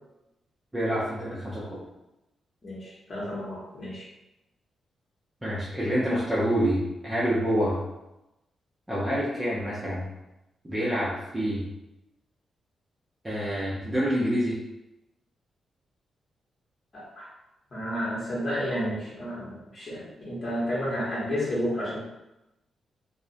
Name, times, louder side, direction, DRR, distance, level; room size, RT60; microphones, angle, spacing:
voice 1, 0.7-1.8 5.4-7.8 8.9-10.1 10.6-11.6 13.2-14.6, equal, 15° right, -8 dB, 0.5 m, -27 dB
voice 2, 2.6-4.1 5.8-5.9 16.9-17.3 17.7-22.0, equal, 40° left, -7 dB, 1.0 m, -31 dB
2.6 x 2.0 x 2.5 m, 0.93 s
cardioid pair, 110°, 0 cm